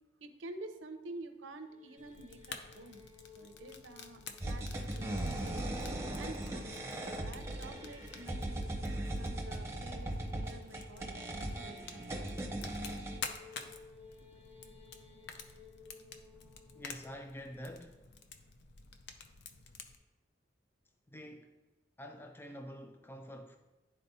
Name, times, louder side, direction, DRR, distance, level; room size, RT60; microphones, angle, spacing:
voice 1, 0.2-3.0 3.3-5.7 6.1-8.7 9.1-12.7, right 2 dB, 75° right, 0.7 m, -49 dB
sound 1, 1.5-18.6, left 5 dB, 30° left, 1.3 m, -57 dB
Fire, 2.0-20.0, left 5 dB, 65° left, 0.6 m, -51 dB
sound 2, 4.4-13.2, right 1 dB, 15° right, 0.7 m, -38 dB
voice 2, 16.8-18.0 21.1-21.6 22.0-23.6, equal, 10° left, 0.3 m, -47 dB
11.0 x 4.2 x 2.7 m
head